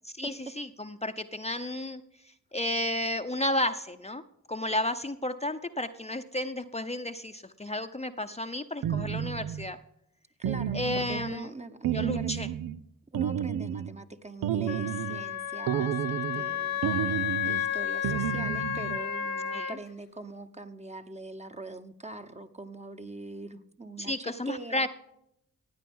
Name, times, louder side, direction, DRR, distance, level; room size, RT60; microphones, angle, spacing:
voice 1, 0.2-2.0 2.5-4.2 4.5-9.8 10.7-11.5 11.9-12.5 19.5-19.8 24.0-24.9, left 1 dB, 20° left, 7 dB, 0.8 m, -32 dB
sound 1, 8.8-9.7 10.4-11.4 11.8-12.8 13.1-14.0 14.4-15.2 15.7-16.5 16.8-17.7 18.0-19.0, right 10 dB, 80° right, 0.6 m, -31 dB
voice 2, 10.4-12.3 13.1-24.9, right 2 dB, 20° right, 8 dB, 1.1 m, -43 dB
Wind instrument woodwind instrument, 14.7-19.8, left 9 dB, 85° left, 1.0 m, -32 dB
16.0 x 9.1 x 5.5 m, 0.79 s
cardioid pair, 55°, 34 cm